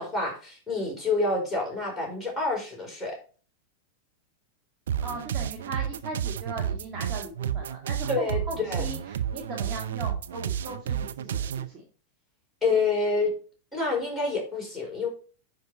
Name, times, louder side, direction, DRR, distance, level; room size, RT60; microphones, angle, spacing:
voice 1, 0.0-3.2 8.1-8.9 12.6-13.3 13.7-15.1, left 3 dB, 5° left, -3 dB, 4.5 m, -28 dB
sound 1, 4.9-11.7, right 9 dB, 60° right, 0.6 m, -31 dB
voice 2, 5.0-11.9, right 2 dB, 25° right, -2 dB, 2.0 m, -39 dB
9.9 x 5.4 x 4.0 m, 0.38 s
figure-of-eight pair, 90°, 0 cm